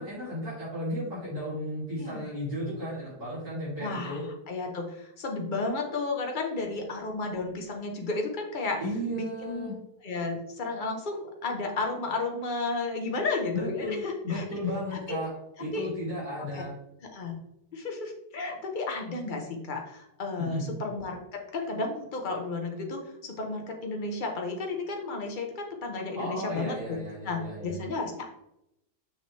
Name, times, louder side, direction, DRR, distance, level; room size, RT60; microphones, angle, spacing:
voice 1, 0.0-4.3 8.8-9.8 13.5-15.3 15.6-16.8 20.4-20.7 26.1-27.7, left 1 dB, 65° right, -10 dB, 3.8 m, -34 dB
voice 2, 1.9-2.3 3.8-4.2 4.5-8.8 9.1-9.7 10.0-14.4 14.9-15.2 15.6-15.9 16.5-16.6 17.1-17.4 17.7-27.0 27.2-28.3, left 3 dB, 30° left, 2 dB, 1.3 m, -33 dB
7.0 x 6.2 x 3.4 m, 0.81 s
omnidirectional pair, 1.7 m